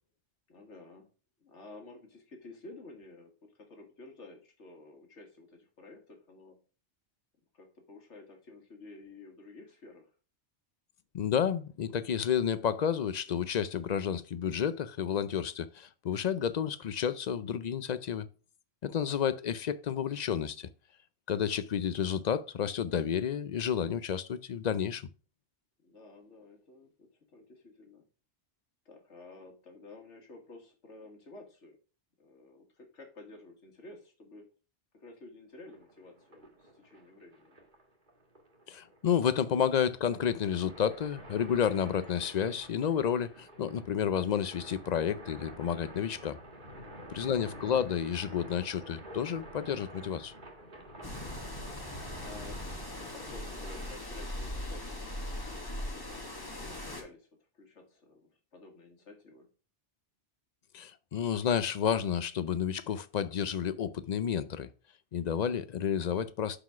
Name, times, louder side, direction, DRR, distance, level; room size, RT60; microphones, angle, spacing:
voice 1, 0.5-1.1 1.4-6.6 7.5-10.1 25.8-28.1 28.9-31.8 32.2-34.5 34.9-37.6 46.7-47.4 51.1-52.6 53.0-55.1 55.9-57.3 57.5-59.5, left 2 dB, 85° left, 2.0 m, -52 dB
voice 2, 11.1-18.3 18.8-20.7 21.3-25.1 38.7-46.4 47.1-50.3 60.7-64.7 65.1-66.6, left 8 dB, 55° left, 0.5 m, -31 dB
sound 1, 35.7-54.0, right 1 dB, 45° right, 1.8 m, -49 dB
sound 2, 51.0-57.0, left 1 dB, 20° left, 1.3 m, -40 dB
5.9 x 5.0 x 5.7 m
omnidirectional pair, 1.2 m